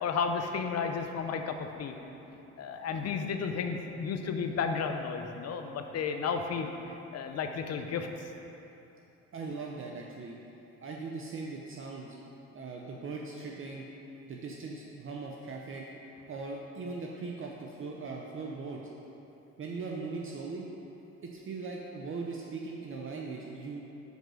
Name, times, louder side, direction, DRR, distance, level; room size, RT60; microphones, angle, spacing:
voice 1, 0.0-1.9 2.6-6.7 7.1-8.3, left 5 dB, 55° left, 5 dB, 0.6 m, -33 dB
voice 2, 9.3-10.3 10.8-12.2 12.5-13.8 14.3-15.8 16.3-18.8 19.6-20.7 21.2-23.8, right 4 dB, 45° right, -1 dB, 0.6 m, -39 dB
5.4 x 4.5 x 6.2 m, 3.0 s
cardioid pair, 90°, 30 cm